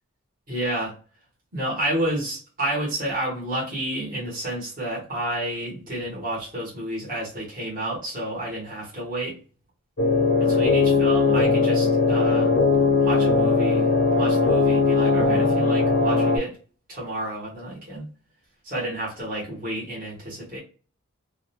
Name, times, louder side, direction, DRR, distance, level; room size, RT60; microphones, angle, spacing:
voice 1, 0.5-0.9 1.5-9.3 10.5-12.5 13.0-13.9 14.2-16.6 16.9-18.1 18.6-20.6, right 1 dB, 40° right, -5 dB, 1.1 m, -30 dB
sound 1, 10.0-16.4, left 4 dB, 50° left, 0.5 m, -19 dB
2.5 x 2.1 x 2.8 m, 0.38 s
head